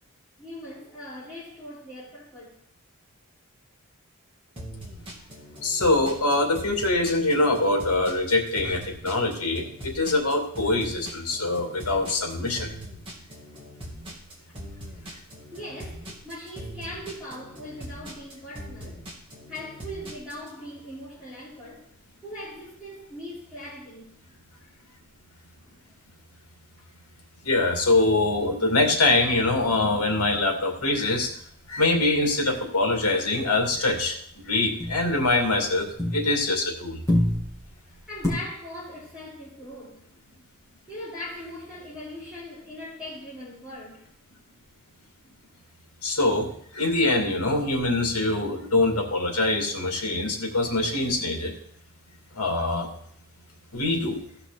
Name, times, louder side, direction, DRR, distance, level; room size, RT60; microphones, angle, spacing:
voice 1, 0.4-2.6 14.9-15.0 15.5-19.0 19.5-21.9 22.2-24.1 24.5-24.8 26.8-26.9 37.9-40.1 40.9-44.1, left 1 dB, 5° right, 4.5 m, -40 dB
sound 1, 4.6-20.5, equal, 25° right, 3.0 m, -41 dB
voice 2, 5.6-12.7 27.4-31.3 31.7-34.2 34.5-37.0 46.0-51.5 52.3-52.9 53.7-54.2, left 2 dB, 80° left, 2.4 m, -24 dB
sound 2, 28.2-31.9 32.1-32.5 32.8-36.6 36.9-38.3, left 1 dB, 15° left, 3.7 m, -31 dB
16.5 x 5.8 x 4.2 m
head